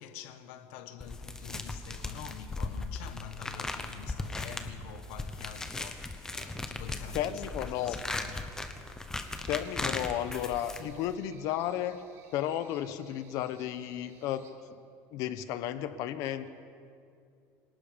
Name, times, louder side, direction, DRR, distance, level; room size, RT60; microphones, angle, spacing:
voice 1, 0.0-8.5, left 10 dB, 85° left, 1.4 m, -46 dB
sound 1, 1.0-11.2, left 2 dB, 10° left, 1.0 m, -38 dB
voice 2, 7.1-8.0 9.5-12.0 12.3-14.5 15.1-16.5, left 11 dB, 55° left, 1.1 m, -33 dB
sound 2, 9.3-14.5, right 5 dB, 40° right, 2.6 m, -60 dB
27.0 x 18.5 x 5.2 m
cardioid pair, 170°, 7 cm